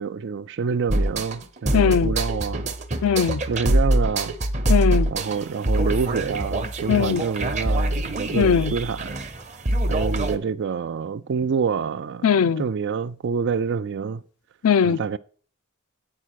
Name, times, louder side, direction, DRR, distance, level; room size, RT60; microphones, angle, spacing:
voice 1, 0.0-2.7 3.5-4.3 5.1-9.2 9.9-12.3 12.6-14.2 14.8-15.2, right 5 dB, 55° right, 0.4 m, -27 dB
sound 1, 0.9-10.4, right 1 dB, 35° right, 0.9 m, -24 dB
voice 2, 1.7-2.1 3.0-3.4 4.7-5.1 6.9-7.2 8.4-8.7 12.2-12.7 14.6-15.0, left 7 dB, 80° left, 0.4 m, -19 dB
8.6 x 5.0 x 6.3 m
head